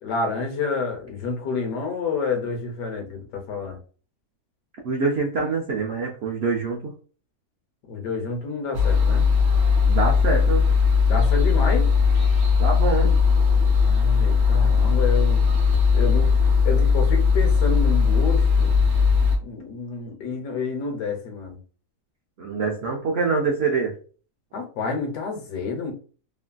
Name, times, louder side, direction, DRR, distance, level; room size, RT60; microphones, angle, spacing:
voice 1, 0.0-3.8 7.9-9.3 11.1-11.9 13.8-15.4 15.9-18.7 19.4-21.6 24.5-25.9, left 4 dB, 90° left, 3 dB, 1.4 m, -29 dB
voice 2, 4.8-6.9 9.8-10.6 12.6-13.2 22.4-23.9, right 4 dB, 90° right, 0 dB, 0.5 m, -25 dB
sound 1, 8.7-19.4, left 5 dB, 55° right, 0.9 m, -18 dB
3.1 x 2.4 x 2.2 m, 0.39 s
omnidirectional pair, 1.7 m